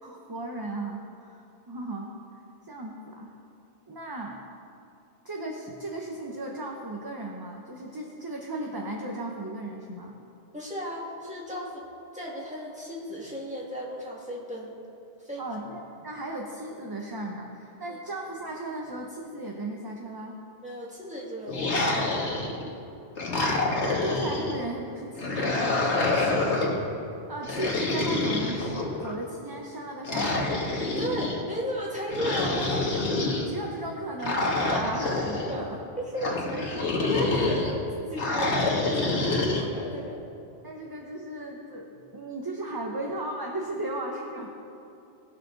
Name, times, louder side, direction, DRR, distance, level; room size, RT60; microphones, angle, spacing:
voice 1, 0.0-3.4 3.9-4.4 5.2-10.2 15.4-20.3 23.7-25.7 27.3-30.5 33.4-35.8 36.2-36.3 40.6-44.5, right 2 dB, 25° right, 0 dB, 0.7 m, -36 dB
voice 2, 10.5-11.9 12.1-14.8 15.2-15.4 17.9-18.0 20.6-22.2 26.1-26.5 31.0-33.3 35.5-35.7 36.0-40.2, equal, 5° right, -5 dB, 2.0 m, -35 dB
sound 1, 21.5-22.7 23.2-24.6 25.2-26.8 27.4-29.1 30.0-31.4 32.1-33.5 34.2-35.5 36.2-37.7 38.2-39.6, left 2 dB, 85° left, 1.7 m, -27 dB
19.5 x 6.5 x 4.0 m, 2.8 s
omnidirectional pair, 1.1 m